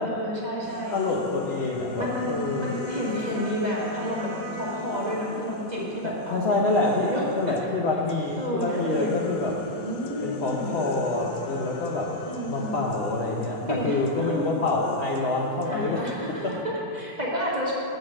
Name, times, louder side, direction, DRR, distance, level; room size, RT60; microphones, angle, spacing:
voice 1, 0.0-0.9 2.0-4.3 4.6-6.5 6.8-7.5 8.4-9.2 9.8-10.7 12.3-12.8 13.7-14.4 15.6-17.7, equal, 25° right, -5 dB, 1.4 m, -30 dB
sound 1, 0.6-7.7 8.1-16.6, left 5 dB, 80° left, 1.2 m, -41 dB
voice 2, 0.9-2.8 6.0-9.6 10.2-12.1 12.5-16.1 16.4-16.6, left 2 dB, 50° left, -3 dB, 0.8 m, -26 dB
Wind instrument woodwind instrument, 1.9-6.1, right 1 dB, 70° right, 1.3 m, -40 dB
7.8 x 5.2 x 7.4 m, 2.6 s
omnidirectional pair, 1.8 m